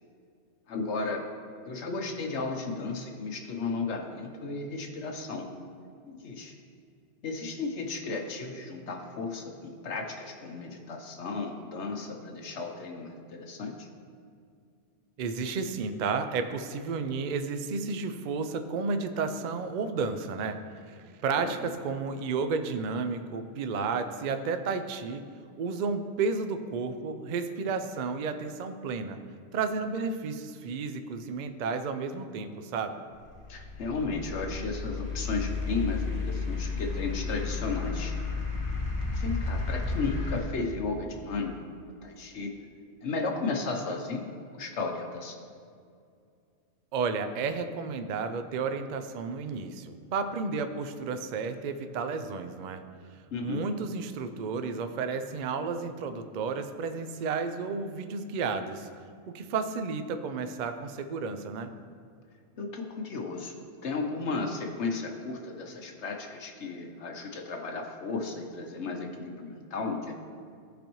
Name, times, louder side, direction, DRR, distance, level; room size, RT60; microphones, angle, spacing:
voice 1, 0.7-1.2 1.7-5.5 6.0-6.5 7.2-13.9 21.4-21.7 33.5-38.1 39.0-41.6 42.0-42.5 43.0-45.4 53.3-53.6 62.6-63.6 63.8-70.1, left 3 dB, 70° left, 3 dB, 1.1 m, -34 dB
voice 2, 15.2-20.6 20.9-25.2 25.6-29.2 29.5-33.0 46.9-52.8 53.4-58.9 59.3-61.7, right 4 dB, 55° right, 8 dB, 0.5 m, -32 dB
sound 1, 33.1-40.4, left 4 dB, 50° left, 1.4 m, -32 dB
15.0 x 5.1 x 3.0 m, 2.3 s
omnidirectional pair, 1.2 m